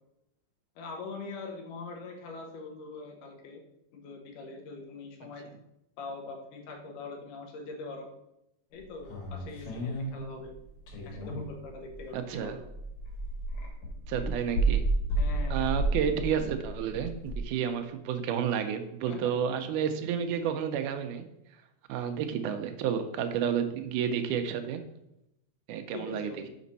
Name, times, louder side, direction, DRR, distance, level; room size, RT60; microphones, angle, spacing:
voice 1, 0.8-3.6 3.9-5.5 6.0-8.1 8.7-10.5 11.1-12.6 15.2-15.7 19.1-19.3 25.9-26.5, left 3 dB, 85° left, 3 dB, 2.5 m, -42 dB
sound 1, 9.0-12.1 12.4-17.4, right 2 dB, 70° left, 3.0 m, -31 dB
voice 2, 12.1-12.6 14.1-14.8 15.5-21.3 21.9-24.8 25.7-26.5, right 8 dB, 85° right, 7 dB, 2.1 m, -31 dB
5.9 x 5.2 x 4.0 m, 0.83 s
omnidirectional pair, 3.6 m